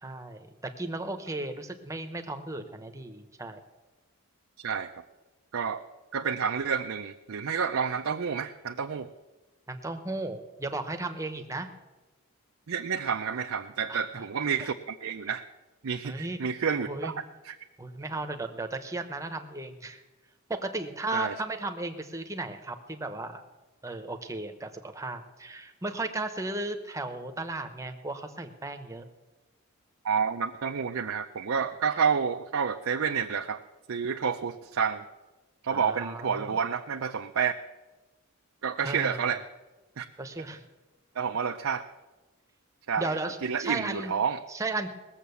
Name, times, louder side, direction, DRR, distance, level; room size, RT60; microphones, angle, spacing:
voice 1, 0.0-3.6 9.7-11.7 13.9-14.0 16.0-16.4 16.8-17.1 17.8-20.0 20.5-23.4 23.8-29.0 35.7-36.6 38.8-39.3 40.2-40.6 43.0-44.1 44.5-44.9, right 2 dB, 15° right, 6 dB, 0.9 m, -35 dB
voice 2, 6.1-9.1 12.7-15.4 15.8-17.1 17.4-17.5 21.1-21.3 30.0-33.6 33.9-35.0 35.6-37.5 38.6-39.4 40.0-40.1 41.2-41.8 42.9-43.2 43.4-44.4, right 6 dB, 65° right, 5 dB, 0.5 m, -29 dB
18.5 x 7.4 x 6.9 m, 1.1 s
head